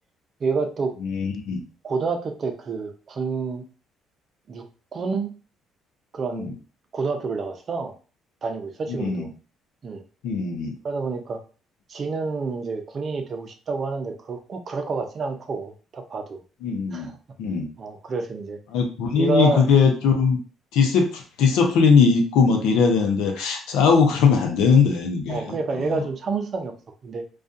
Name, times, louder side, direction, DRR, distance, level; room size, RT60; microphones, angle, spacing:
voice 1, 0.4-0.9 1.8-3.6 4.5-4.6 4.9-5.3 6.1-6.5 6.9-7.9 8.4-9.3 9.8-10.0 10.8-11.4 11.9-16.4 16.9-17.1 17.8-18.6 19.1-19.7 25.3-26.7 27.0-27.2, right 4 dB, 45° right, 5 dB, 0.5 m, -28 dB
voice 2, 1.0-1.6 6.3-6.5 8.9-9.3 10.2-10.7 16.6-17.1 17.4-17.7 18.7-20.4 20.7-26.0, left 5 dB, 85° left, 3 dB, 0.6 m, -20 dB
2.3 x 2.3 x 2.6 m, 0.36 s
cardioid pair, 90°, 0 cm